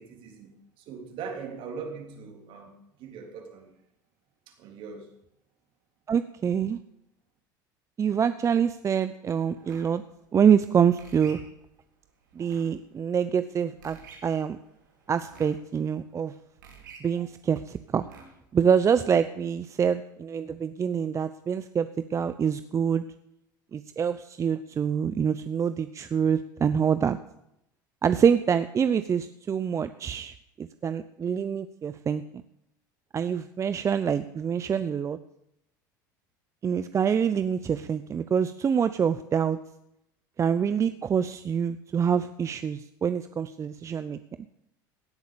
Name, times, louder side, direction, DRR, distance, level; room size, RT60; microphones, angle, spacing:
voice 1, 0.0-2.7 3.0-3.7 4.5-5.1, right 5 dB, 55° right, 3.4 m, -41 dB
voice 2, 6.1-6.8 8.0-10.0 10.3-11.4 12.4-14.6 15.1-16.3 17.0-18.0 18.5-23.1 23.7-27.2 28.0-32.2 33.1-35.2 36.6-39.6 40.4-44.2, right 7 dB, 30° right, 0.6 m, -26 dB
sound 1, 9.5-18.5, right 5 dB, 85° right, 3.9 m, -52 dB
17.0 x 8.1 x 6.9 m
hypercardioid pair, 85°, 10 cm